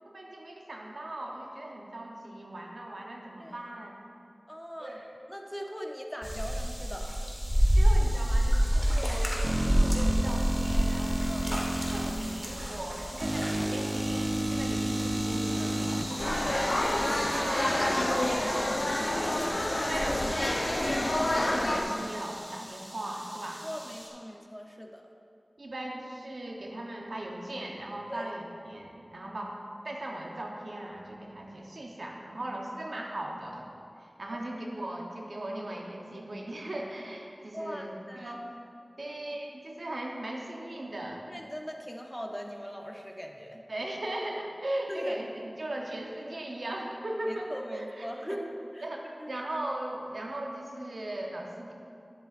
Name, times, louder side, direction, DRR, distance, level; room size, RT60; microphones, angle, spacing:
voice 1, 0.1-4.0 4.8-5.1 7.7-11.6 11.9-16.9 17.3-23.6 25.6-33.7 34.0-38.5 39.0-41.3 43.7-48.4 48.8-51.7, right 1 dB, 80° right, 0 dB, 0.9 m, -38 dB
voice 2, 4.5-5.0 5.3-7.1 11.3-11.5 15.6-16.0 23.6-25.0 28.1-28.2 37.5-38.3 39.0-39.2 41.3-43.6 44.9-45.2 47.3-48.9 49.2-49.3, equal, 10° left, 1 dB, 0.8 m, -40 dB
sound 1, 6.2-24.1, equal, 10° right, 1.5 m, -30 dB
sound 2, 9.4-12.1 13.2-16.0, right 1 dB, 30° right, 0.5 m, -31 dB
sound 3, 16.2-21.8, left 1 dB, 65° left, 0.7 m, -28 dB
10.5 x 7.5 x 2.5 m, 2.5 s
wide cardioid pair, 40°, 0 cm